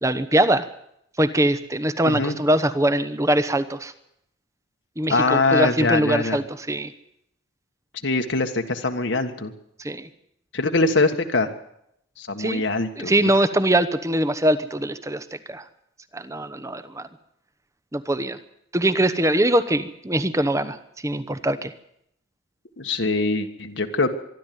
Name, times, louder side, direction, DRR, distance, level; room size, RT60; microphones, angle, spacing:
voice 1, 0.0-0.7 1.2-3.9 5.0-6.9 9.8-10.1 12.4-12.6 13.0-15.6 16.1-17.1 17.9-18.4 18.7-20.8 21.0-21.7, right 1 dB, 15° right, 13 dB, 1.0 m, -22 dB
voice 2, 2.0-2.4 5.1-6.4 8.0-9.5 10.5-11.5 12.2-13.3 22.8-24.1, left 3 dB, 75° left, 5 dB, 1.6 m, -23 dB
24.0 x 12.0 x 9.4 m, 0.76 s
head